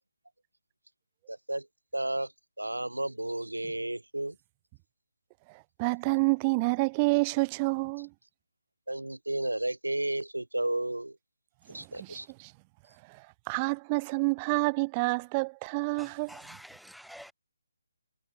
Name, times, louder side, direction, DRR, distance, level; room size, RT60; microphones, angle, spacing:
voice 1, 1.3-1.6 1.9-2.3 2.6-4.3 8.9-11.1 11.7-12.3, right 1 dB, 90° right, 2.7 m, -32 dB
voice 2, 5.5-8.1 11.7-12.5 13.1-16.4, right 28 dB, 20° right, 3.7 m, -29 dB
voice 3, 16.3-17.3, equal, ahead, 0.9 m, -48 dB
figure-of-eight pair, 150°, 0 cm